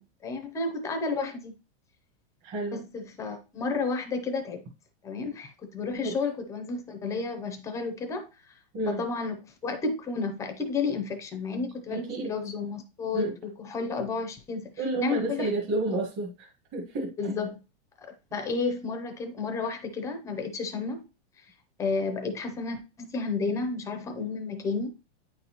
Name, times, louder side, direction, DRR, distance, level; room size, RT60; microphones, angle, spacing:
voice 1, 0.0-1.6 2.7-4.6 5.0-8.3 8.9-14.7 15.0-15.5 15.9-16.0 17.2-17.5 18.0-21.0 21.8-24.9, left 4 dB, 10° left, 0.5 m, -32 dB
voice 2, 2.4-2.8 6.0-6.2 8.7-9.0 11.9-12.3 13.1-13.4 14.8-17.3, right 2 dB, 30° right, 1.4 m, -31 dB
8.9 x 4.0 x 2.9 m
supercardioid pair, 155°, 36 cm